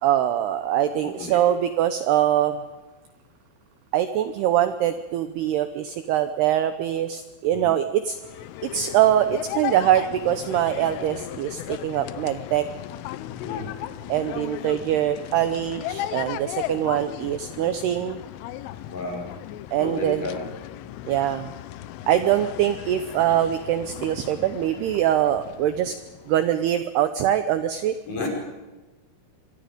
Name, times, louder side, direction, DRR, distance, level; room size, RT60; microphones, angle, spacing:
voice 1, 0.0-2.6 3.9-8.2 8.7-12.7 14.1-18.2 19.7-20.2 21.1-21.5 22.1-26.0 26.3-28.0, right 11 dB, 75° right, 10 dB, 2.5 m, -23 dB
voice 2, 0.8-1.4 7.5-7.7 13.4-13.7 18.9-19.3 19.7-20.5 28.1-28.3, left 3 dB, 40° left, 0 dB, 6.7 m, -32 dB
sound 1, 8.1-26.6, left 13 dB, 85° left, 3.4 m, -36 dB
25.0 x 24.5 x 5.2 m, 1.2 s
omnidirectional pair, 5.6 m